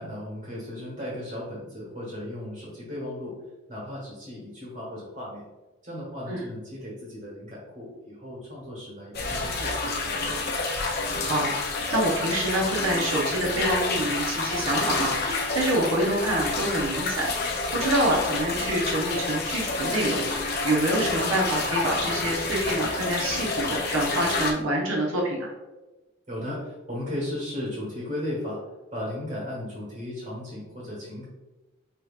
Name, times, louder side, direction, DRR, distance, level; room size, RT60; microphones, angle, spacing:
voice 1, 0.0-3.3 3.7-5.4 5.8-10.3 26.3-28.6 28.9-31.2, left 1 dB, 40° right, -6 dB, 1.3 m, -36 dB
sound 1, 9.1-24.5, left 3 dB, 50° left, 0.6 m, -28 dB
voice 2, 11.2-25.5, right 1 dB, 90° right, -2 dB, 0.9 m, -27 dB
5.4 x 2.9 x 2.4 m, 1.1 s
head